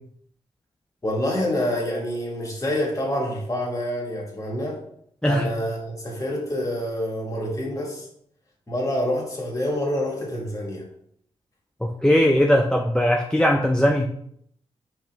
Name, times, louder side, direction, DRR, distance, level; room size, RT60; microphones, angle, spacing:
voice 1, 1.0-4.8 5.2-8.1 8.7-10.9, left 1 dB, 30° left, -1 dB, 1.6 m, -27 dB
voice 2, 11.8-14.1, equal, 5° left, 2 dB, 0.4 m, -19 dB
5.0 x 3.0 x 3.4 m, 0.69 s
cardioid pair, 65°, 11 cm